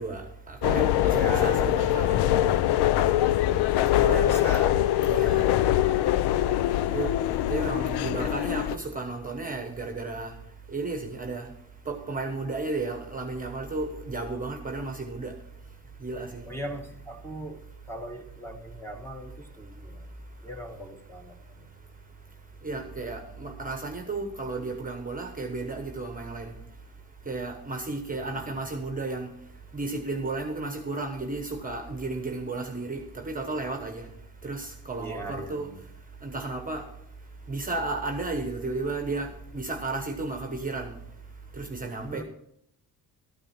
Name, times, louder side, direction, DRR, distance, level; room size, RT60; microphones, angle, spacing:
voice 1, 0.0-2.2 4.0-4.3 5.1-5.5 6.9-7.1 7.5-10.3 10.7-11.5 11.9-15.3 16.0-16.4 22.6-26.5 27.3-29.3 29.7-34.0 34.4-35.7 36.2-36.8 37.5-40.9 41.6-42.2, right 3 dB, 20° right, 5 dB, 1.1 m, -33 dB
sound 1, 0.6-8.8, left 12 dB, 90° left, 0.6 m, -23 dB
voice 2, 1.0-1.7 4.2-4.7 5.8-6.1 16.5-17.6 17.9-20.0 20.4-21.7 28.3-28.5 35.0-35.8 42.0-42.2, right 1 dB, 5° left, 3 dB, 1.4 m, -39 dB
13.0 x 9.0 x 4.4 m, 0.74 s
cardioid pair, 125°, 38 cm